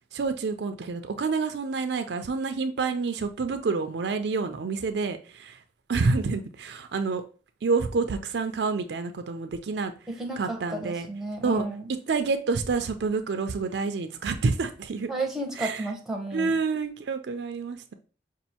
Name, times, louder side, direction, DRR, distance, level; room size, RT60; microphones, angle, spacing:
voice 1, 0.1-5.6 5.9-7.2 7.6-9.9 10.4-11.1 11.4-11.7 12.1-15.1 15.6-15.8 16.3-17.9, right 4 dB, 65° right, 0.4 m, -28 dB
voice 2, 10.1-11.8 15.1-16.5, right 2 dB, ahead, 0.7 m, -32 dB
5.3 x 2.4 x 2.8 m
head